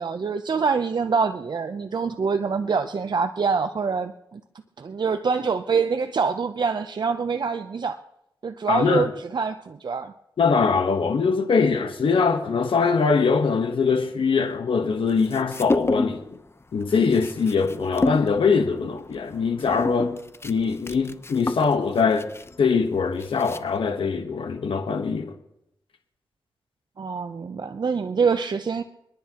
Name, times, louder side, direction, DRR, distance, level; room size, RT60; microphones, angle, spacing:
voice 1, 0.0-4.4 4.8-8.0 8.4-10.1 27.0-28.8, right 5 dB, 55° right, 0.6 m, -25 dB
voice 2, 8.7-9.1 10.4-16.2 16.7-20.1 20.4-22.3 22.6-25.3, left 5 dB, 80° left, 1.2 m, -22 dB
sound 1, 15.1-16.3 16.6-23.9, left 2 dB, 30° left, 0.7 m, -30 dB
29.0 x 10.5 x 2.9 m
cardioid pair, 65°, 9 cm